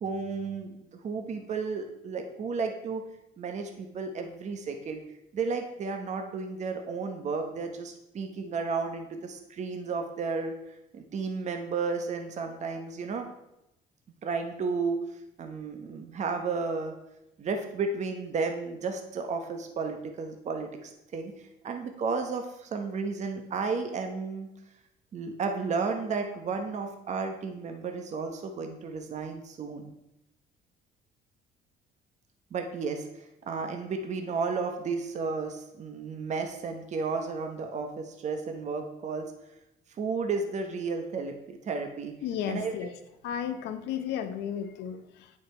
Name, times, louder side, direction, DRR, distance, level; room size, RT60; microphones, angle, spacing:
voice 1, 0.0-3.0 3.4-5.0 5.3-10.5 10.9-13.3 14.2-15.0 15.4-16.9 17.4-21.3 21.6-24.5 25.1-29.9 32.5-39.3 40.0-42.2 42.5-42.7, right 4 dB, 45° right, 5 dB, 1.0 m, -33 dB
voice 2, 42.2-42.9 43.2-45.3, left 9 dB, 85° left, 8 dB, 0.9 m, -33 dB
8.6 x 6.4 x 4.4 m, 0.87 s
cardioid pair, 110°, 17 cm